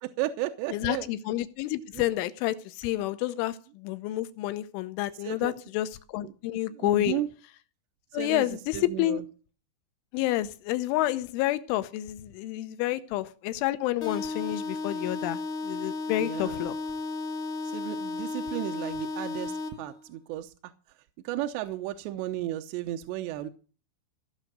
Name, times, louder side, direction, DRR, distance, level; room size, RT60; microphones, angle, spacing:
voice 1, 0.0-1.1 5.2-5.5 6.2-6.3 6.8-7.3 8.2-8.4 8.7-9.2 16.2-16.7 17.7-20.5 21.2-23.5, right 14 dB, 75° right, 2.7 m, -34 dB
voice 2, 0.7-7.2 8.1-9.2 10.1-16.7, left 15 dB, 80° left, 3.3 m, -29 dB
sound 1, 14.0-20.0, left 3 dB, 50° left, 1.5 m, -34 dB
16.5 x 6.4 x 7.9 m
omnidirectional pair, 5.6 m